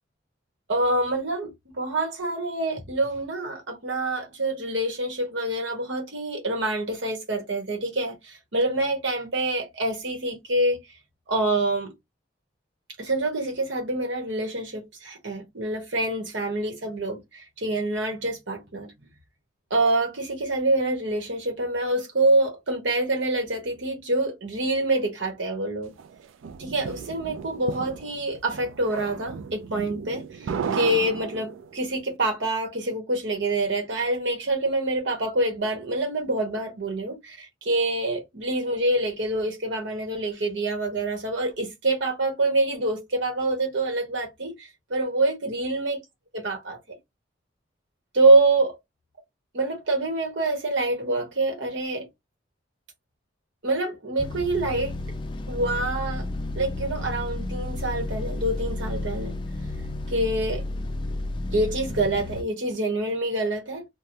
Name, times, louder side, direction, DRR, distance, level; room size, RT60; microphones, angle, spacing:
voice 1, 0.7-10.8 11.3-11.9 13.0-18.9 19.7-25.9 26.6-46.0 46.3-46.8 48.1-48.8 49.5-52.1 53.6-54.9 55.5-56.3 56.5-59.4 60.1-60.7 61.5-63.9, right 2 dB, 70° right, 1.1 m, -26 dB
sound 1, 26.0-31.9, right 6 dB, 90° right, 0.4 m, -35 dB
sound 2, 54.2-62.4, left 2 dB, 25° left, 0.3 m, -32 dB
3.2 x 2.2 x 2.6 m
head